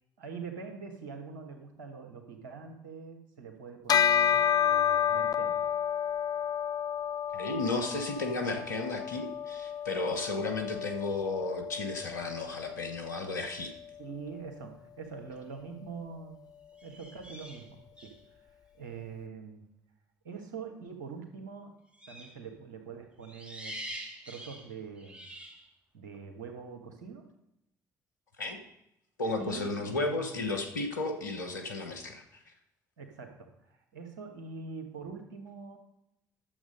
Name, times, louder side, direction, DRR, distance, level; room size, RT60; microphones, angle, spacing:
voice 1, 0.2-5.6 14.0-16.4 16.8-19.6 20.2-21.8 22.1-23.8 24.3-25.3 25.9-27.3 29.4-30.3 33.0-35.8, right 5 dB, 80° right, 4 dB, 1.5 m, -44 dB
Bell, 3.9-13.6, left 9 dB, 40° left, 0.4 m, -30 dB
voice 2, 7.3-13.7 28.4-28.6 29.2-32.2, left 3 dB, 90° left, 5 dB, 1.1 m, -33 dB
sound 1, 15.3-15.6 16.7-18.2 21.9-22.4 23.2-25.7, right 1 dB, 10° right, 2.7 m, -45 dB
11.0 x 7.4 x 5.3 m, 0.84 s
hypercardioid pair, 50°, 10 cm